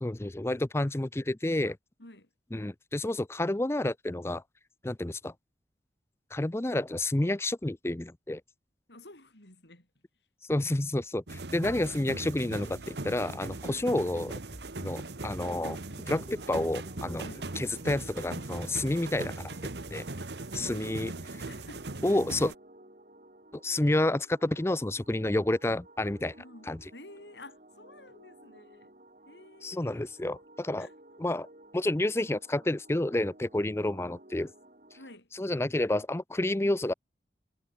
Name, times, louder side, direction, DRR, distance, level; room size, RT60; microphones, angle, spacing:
voice 1, 0.0-1.8 2.5-4.4 4.8-5.3 6.3-8.4 10.5-14.3 14.8-15.8 16.1-17.3 17.6-19.5 19.9-20.0 20.5-21.1 22.0-22.5 23.6-26.3 26.7-26.8 29.6-30.9 31.2-31.5 31.7-34.5 35.4-36.9, left 1 dB, 15° left, 0.5 m, -29 dB
voice 2, 2.0-2.3 8.9-10.0 11.3-11.8 13.6-13.9 17.2-17.5 20.2-21.9 26.4-28.9 29.2-30.0 30.8-30.9 35.0-35.3, left 1 dB, 80° left, 4.9 m, -51 dB
sound 1, 11.3-22.5, right 2 dB, 75° right, 1.6 m, -39 dB
sound 2, 12.5-15.8 16.0-16.1 16.5-17.1 17.5-18.1 18.5-20.3, equal, 15° right, 5.5 m, -56 dB
sound 3, 15.5-35.2, right 1 dB, 45° right, 4.6 m, -55 dB
head